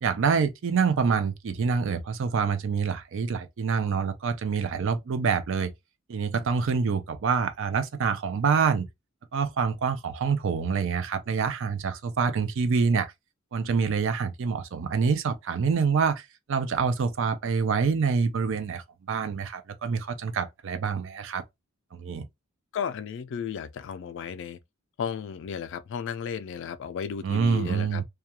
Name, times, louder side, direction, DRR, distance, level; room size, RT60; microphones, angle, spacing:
voice 1, 0.0-5.7 6.1-8.9 9.3-13.1 13.5-21.4 21.9-22.3 27.2-28.0, right 5 dB, 60° right, 0.4 m, -26 dB
voice 2, 22.7-24.6 25.0-28.0, left 7 dB, 60° left, 0.3 m, -34 dB
2.3 x 2.2 x 2.7 m
head